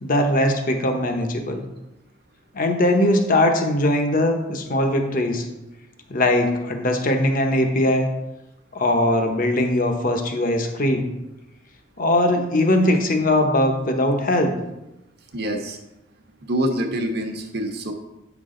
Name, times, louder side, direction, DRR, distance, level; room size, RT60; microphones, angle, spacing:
voice 1, 0.0-1.6 2.5-5.5 6.1-8.1 8.7-11.1 12.0-14.5, left 1 dB, 45° left, 4 dB, 1.0 m, -20 dB
voice 2, 15.3-15.8 16.4-17.9, equal, 50° right, 3 dB, 1.1 m, -25 dB
8.8 x 6.1 x 3.8 m, 0.97 s
head